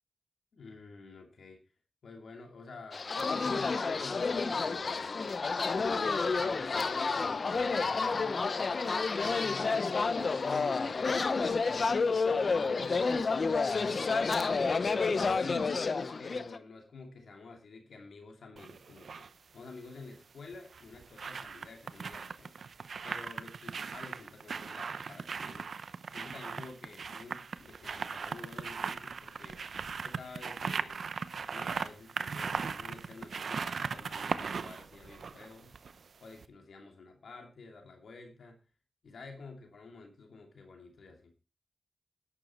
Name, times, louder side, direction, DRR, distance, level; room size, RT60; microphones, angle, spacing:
voice 1, 0.5-1.7 2.0-5.1 5.8-8.8 9.2-11.2 11.7-13.2 13.6-15.8 16.2-19.3 19.5-22.6 23.0-25.7 26.1-29.6 30.0-31.0 31.5-35.7 36.2-38.6 39.0-41.3, left 3 dB, 85° left, 3 dB, 2.6 m, -50 dB
sound 1, 2.9-16.6, left 4 dB, 60° left, 0.9 m, -30 dB
sound 2, 18.6-19.3 20.5-36.1 36.4-36.5, right 5 dB, 80° right, 0.7 m, -38 dB
11.0 x 9.6 x 4.5 m, 0.31 s
cardioid pair, 60°, 0 cm